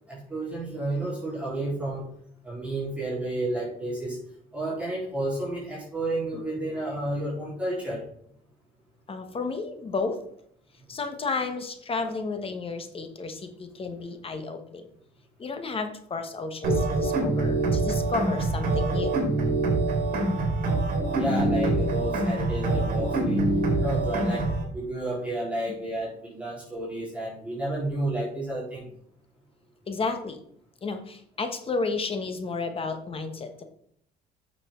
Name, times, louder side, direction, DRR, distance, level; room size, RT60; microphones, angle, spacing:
voice 1, 0.1-2.1 2.4-4.2 4.5-8.0 21.1-24.5 24.7-28.9, right 1 dB, 5° right, -7 dB, 4.0 m, -31 dB
voice 2, 9.1-10.2 10.9-14.9 15.4-19.1 29.9-30.4 30.8-33.6, left 4 dB, 35° left, 7 dB, 1.2 m, -32 dB
sound 1, 16.6-24.6, right 2 dB, 55° right, 2.8 m, -25 dB
8.8 x 6.7 x 3.8 m, 0.66 s
cardioid pair, 110°, 17 cm